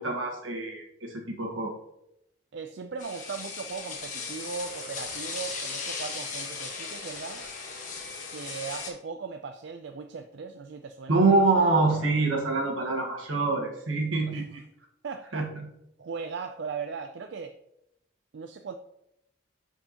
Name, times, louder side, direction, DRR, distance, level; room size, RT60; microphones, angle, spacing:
voice 1, 0.0-1.7 11.1-14.6 15.3-15.6, right 3 dB, 85° right, 2 dB, 1.5 m, -25 dB
voice 2, 2.5-7.5 8.3-11.2 14.3-14.4 15.0-15.5 16.0-17.6 18.3-18.7, right 5 dB, 65° right, 7 dB, 0.4 m, -38 dB
sound 1, 3.0-8.9, left 4 dB, 40° left, 1.3 m, -37 dB
10.5 x 4.5 x 2.9 m, 0.82 s
head